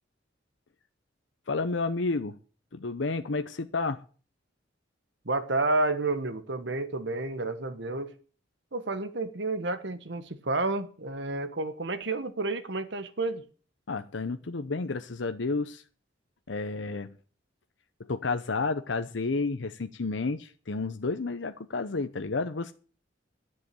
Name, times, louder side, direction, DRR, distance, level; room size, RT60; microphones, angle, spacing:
voice 1, 1.5-2.4 2.7-4.0 13.9-15.8 16.5-17.1 18.1-22.7, left 3 dB, 80° left, 0.8 m, -31 dB
voice 2, 5.2-8.1 8.7-13.4, right 2 dB, 65° right, 1.4 m, -30 dB
11.0 x 7.7 x 8.3 m
head